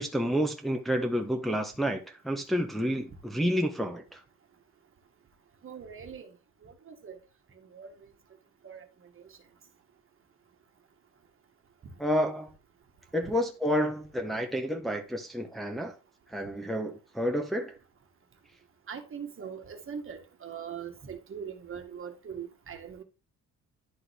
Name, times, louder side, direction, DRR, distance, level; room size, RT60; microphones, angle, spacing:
voice 1, 0.0-4.2 12.0-12.5 13.1-15.9 16.3-17.7, equal, ahead, 1.2 m, -30 dB
voice 2, 5.6-6.3 6.6-7.2 7.7-7.9 8.6-8.8 9.2-9.3 18.9-23.0, right 7 dB, 45° right, 1.7 m, -41 dB
11.5 x 3.9 x 3.4 m
cardioid pair, 90°, 30 cm